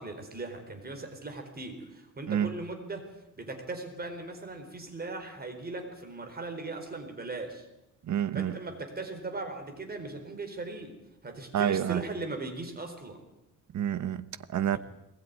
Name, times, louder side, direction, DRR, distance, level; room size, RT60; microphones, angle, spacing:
voice 1, 0.0-7.7 8.3-13.2, right 3 dB, 30° right, 4.2 m, -39 dB
voice 2, 8.0-8.6 11.5-12.0 13.7-14.8, right 9 dB, 65° right, 1.1 m, -28 dB
21.5 x 19.5 x 9.5 m
wide cardioid pair, 145°, 32 cm